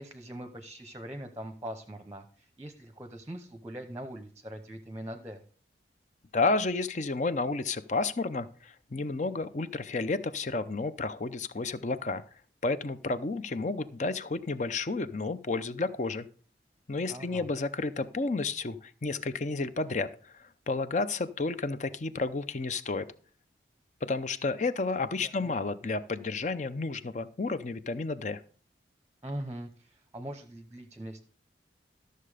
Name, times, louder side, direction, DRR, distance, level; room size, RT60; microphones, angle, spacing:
voice 1, 0.0-5.4 17.1-17.5 25.2-25.6 29.2-31.2, right 1 dB, 15° right, 8 dB, 0.8 m, -42 dB
voice 2, 6.3-12.2 12.6-16.3 16.9-23.1 24.0-28.4, left 3 dB, 40° left, 13 dB, 0.6 m, -31 dB
13.0 x 6.7 x 4.9 m, 0.43 s
head